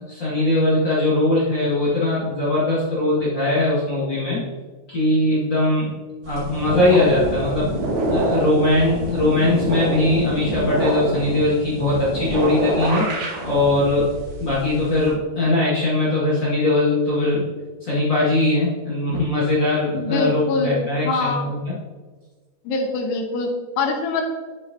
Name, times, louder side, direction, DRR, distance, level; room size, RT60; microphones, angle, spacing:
voice 1, 0.1-4.4 4.9-5.9 6.2-7.7 8.1-13.1 13.4-14.1 14.4-17.4 17.8-21.8, left 2 dB, 45° left, -8 dB, 1.6 m, -20 dB
sound 1, 6.2-15.1, right 1 dB, 75° right, 4.1 m, -26 dB
voice 2, 19.9-21.5 22.6-24.2, left 3 dB, 80° left, 2 dB, 3.2 m, -24 dB
10.5 x 7.3 x 2.7 m, 1.4 s
omnidirectional pair, 4.9 m